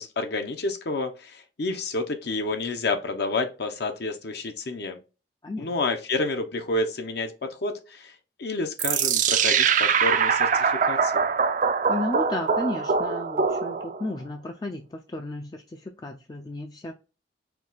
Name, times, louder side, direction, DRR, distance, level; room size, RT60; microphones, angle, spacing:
voice 1, 0.0-5.0 5.6-8.1 8.4-11.2, left 3 dB, 65° left, 0.7 m, -29 dB
sound 1, 8.8-14.1, right 6 dB, 45° right, 0.4 m, -23 dB
voice 2, 11.9-16.9, left 2 dB, 20° left, 0.4 m, -33 dB
4.6 x 2.3 x 3.9 m
head